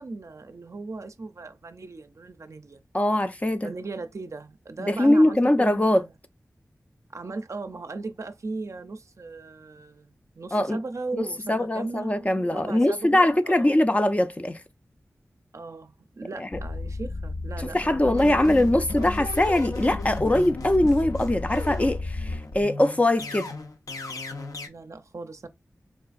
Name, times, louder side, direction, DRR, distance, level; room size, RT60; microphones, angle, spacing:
voice 1, 0.0-2.8 3.6-6.1 7.1-13.7 15.5-19.3 24.7-25.5, right 3 dB, 60° right, 0.4 m, -37 dB
voice 2, 2.9-3.7 4.8-6.0 10.5-10.8 11.1-14.6 16.4-16.5 17.6-23.5, left 1 dB, 25° left, 0.4 m, -22 dB
sound 1, 16.5-22.4, left 2 dB, 55° left, 0.9 m, -33 dB
sound 2, 17.7-24.7, left 2 dB, 80° left, 0.6 m, -37 dB
4.5 x 2.4 x 2.4 m
cardioid pair, 45°, 6 cm